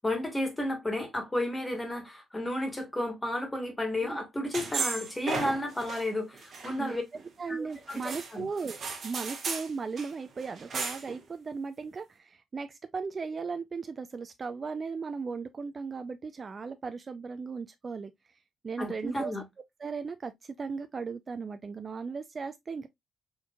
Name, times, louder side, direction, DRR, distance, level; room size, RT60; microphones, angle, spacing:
voice 1, 0.0-7.0 7.5-8.5 18.8-19.4, left 1 dB, 15° left, 1.4 m, -32 dB
sound 1, 4.5-6.1 6.3-7.3 7.9-9.7 10.0-10.1 10.4-11.2, right 4 dB, 50° right, 1.1 m, -35 dB
voice 2, 7.4-18.1 18.6-19.3 19.8-22.9, right 5 dB, 30° right, 0.3 m, -37 dB
4.3 x 2.8 x 2.3 m
cardioid pair, 125°, 0 cm